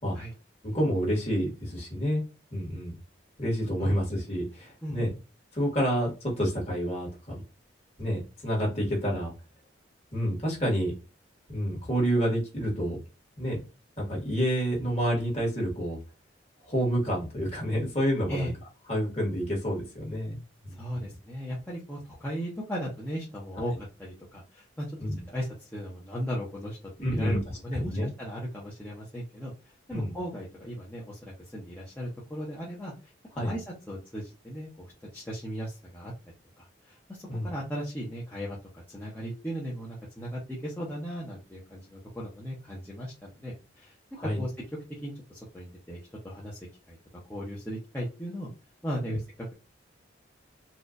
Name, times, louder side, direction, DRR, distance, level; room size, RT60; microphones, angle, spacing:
voice 1, 0.6-2.2 2.5-2.9 3.4-5.1 5.5-7.4 8.0-9.3 10.1-10.9 11.5-13.0 13.4-13.6 14.0-16.0 16.7-18.5 18.9-21.1 25.0-25.2 27.0-27.4 27.8-28.1 29.9-30.2 33.3-33.5 37.3-37.5 44.2-44.4, equal, 35° left, -2 dB, 1.6 m, -29 dB
voice 2, 4.8-5.1 18.3-18.5 20.7-23.7 24.0-24.9 25.3-27.4 27.6-29.5 29.9-32.9 33.4-36.1 36.6-43.9 44.2-44.5 45.0-46.6 46.9-47.0 47.3-48.5 48.8-49.2, equal, 10° left, -7 dB, 0.7 m, -37 dB
4.2 x 2.4 x 2.5 m, 0.30 s
head